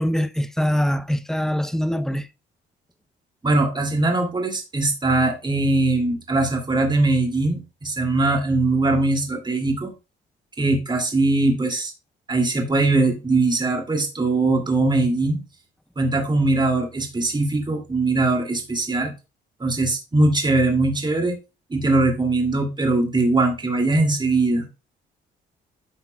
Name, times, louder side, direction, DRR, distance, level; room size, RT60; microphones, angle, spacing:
voice 1, 0.0-2.3, equal, ahead, 0.6 m, -23 dB
voice 2, 3.4-9.9 10.6-11.9 12.3-15.4 16.0-19.1 19.6-21.3 21.7-24.7, right 2 dB, 20° right, 2.4 m, -21 dB
10.5 x 5.7 x 2.2 m
cardioid pair, 90°, 20 cm